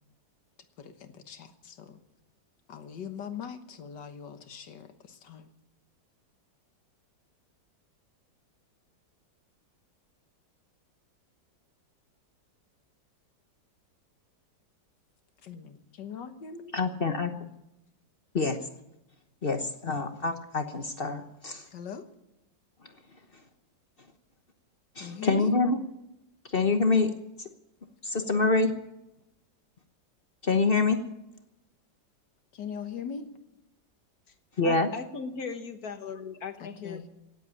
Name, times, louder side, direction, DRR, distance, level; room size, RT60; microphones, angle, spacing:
voice 1, 0.8-2.0 2.7-5.5 15.4-16.7 21.7-22.1 25.0-25.5 32.5-33.3 36.6-37.1, left 6 dB, 75° left, 8 dB, 2.0 m, -41 dB
voice 2, 16.7-17.5 18.3-18.7 19.4-21.7 22.8-22.9 24.9-25.8 26.5-27.1 27.4-27.5 28.0-28.7 30.4-31.0 34.6-34.9, left 3 dB, 40° left, 7 dB, 1.0 m, -26 dB
voice 3, 34.6-37.1, left 5 dB, 60° left, 8 dB, 1.8 m, -38 dB
17.5 x 8.4 x 9.8 m, 0.90 s
omnidirectional pair, 1.9 m